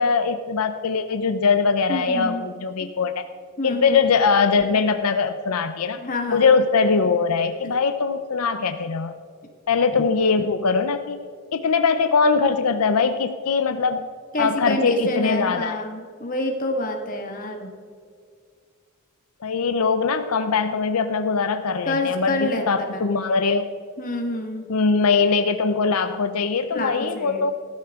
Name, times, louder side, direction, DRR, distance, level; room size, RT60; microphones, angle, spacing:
voice 1, 0.0-3.2 3.6-6.0 6.3-9.1 9.7-11.2 11.5-14.1 14.4-15.8 19.4-23.6 24.7-27.5, left 5 dB, 85° left, 9 dB, 0.6 m, -21 dB
voice 2, 1.9-2.5 2.8-2.9 3.6-4.0 6.0-6.5 14.3-17.7 21.9-23.0 24.0-24.6 26.7-27.5, left 1 dB, 40° left, 3 dB, 1.7 m, -27 dB
15.0 x 13.0 x 3.7 m, 2.1 s
head